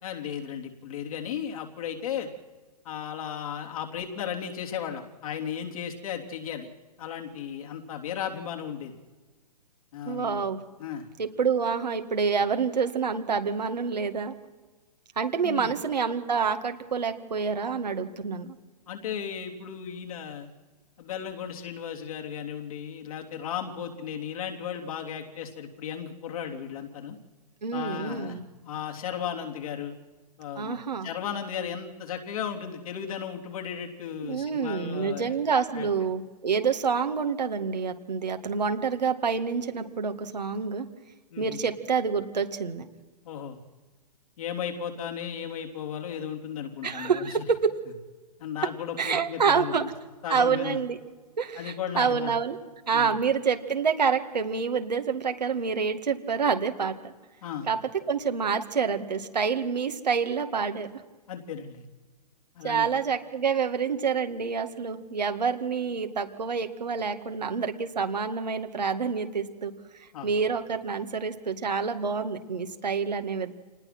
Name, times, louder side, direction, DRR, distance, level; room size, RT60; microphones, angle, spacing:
voice 1, 0.0-2.3 2.9-6.7 7.0-8.9 9.9-10.4 10.8-11.1 15.4-15.7 18.9-20.5 21.0-27.2 27.7-29.9 30.4-35.4 35.7-35.9 41.3-41.6 43.3-43.6 44.4-47.4 48.4-49.9 50.2-50.8 51.6-52.3 52.9-53.2 57.4-57.7 61.3-61.9 62.6-62.9 70.1-70.3, left 8 dB, 55° left, 1 dB, 3.5 m, -35 dB
voice 2, 10.1-10.6 11.2-14.3 15.2-18.6 27.6-28.4 30.6-31.1 34.2-40.9 41.4-42.9 46.8-47.7 49.0-49.8 50.3-51.0 51.4-52.6 52.9-57.1 57.7-57.8 58.1-60.9 62.6-69.7 70.2-73.5, right 6 dB, 80° right, 6 dB, 2.1 m, -27 dB
27.0 x 19.5 x 6.1 m, 1.3 s
hypercardioid pair, 125°, 21 cm